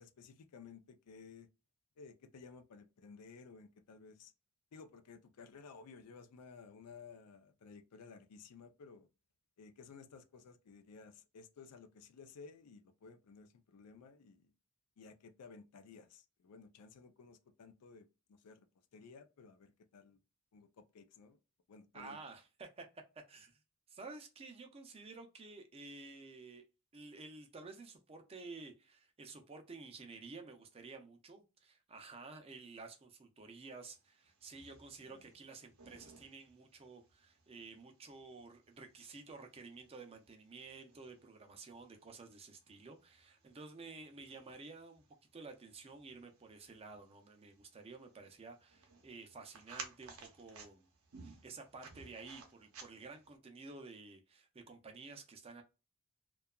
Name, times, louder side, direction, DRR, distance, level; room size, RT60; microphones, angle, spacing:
voice 1, 0.0-1.5 2.0-4.3 4.7-9.1 9.6-14.5 15.0-18.7 18.9-20.2 20.5-21.4 21.7-22.2 35.1-35.2, left 5 dB, 85° left, 0.4 m, -56 dB
voice 2, 21.9-23.6 23.9-26.6 26.9-45.1 45.3-50.9 51.2-55.6, right 3 dB, 25° right, 0.4 m, -52 dB
sound 1, 33.9-53.4, right 5 dB, 65° right, 0.6 m, -58 dB
2.7 x 2.3 x 2.2 m
head